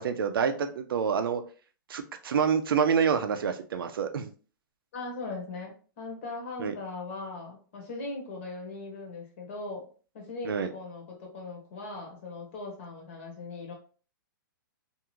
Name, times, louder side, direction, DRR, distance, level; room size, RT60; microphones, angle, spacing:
voice 1, 0.0-1.4 1.9-4.3 6.6-6.7 10.4-10.7, right 7 dB, 80° right, 8 dB, 0.5 m, -27 dB
voice 2, 4.9-9.9 10.1-13.7, left 3 dB, 35° left, 0 dB, 0.9 m, -39 dB
2.6 x 2.4 x 3.0 m, 0.38 s
hypercardioid pair, 170°, 12 cm